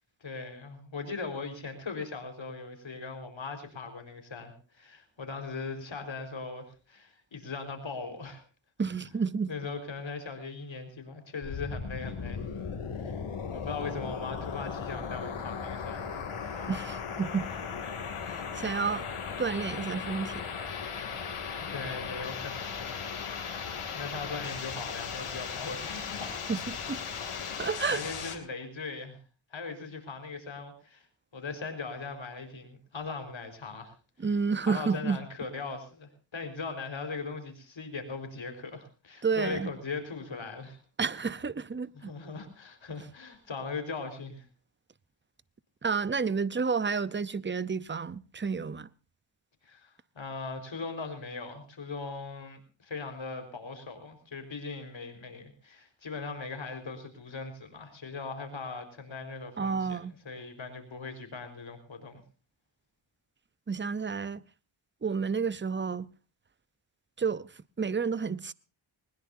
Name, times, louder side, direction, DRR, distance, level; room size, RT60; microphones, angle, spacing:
voice 1, 0.2-8.4 9.5-12.6 13.0-13.1 13.5-16.7 21.6-23.1 23.5-26.4 27.3-29.2 29.5-31.1 31.3-33.9 34.6-40.8 41.9-44.5 49.6-62.2, left 4 dB, 65° left, 4.7 m, -39 dB
voice 2, 8.8-9.5 16.7-17.5 18.2-19.1 19.4-20.4 26.5-27.0 27.6-28.0 34.2-35.2 39.2-39.7 41.0-42.1 45.8-48.9 59.6-60.1 63.7-64.4 65.0-66.1 67.2-67.5 67.8-68.5, right 5 dB, 25° right, 0.7 m, -30 dB
sound 1, 11.4-28.4, left 6 dB, 85° left, 2.8 m, -37 dB
21.0 x 20.5 x 2.7 m
wide cardioid pair, 70°, 49 cm